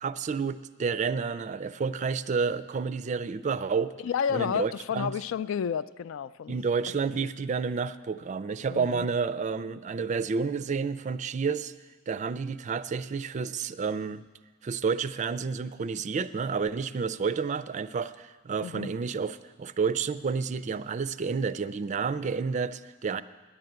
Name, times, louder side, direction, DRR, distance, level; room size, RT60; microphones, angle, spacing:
voice 1, 0.0-3.9 4.3-5.1 6.5-11.7 12.1-14.2 14.6-23.2, right 5 dB, 35° right, 0.3 m, -30 dB
voice 2, 4.0-6.6 7.1-7.3 8.7-9.1 18.6-18.9, left 7 dB, 85° left, 0.3 m, -31 dB
10.0 x 8.7 x 9.2 m
head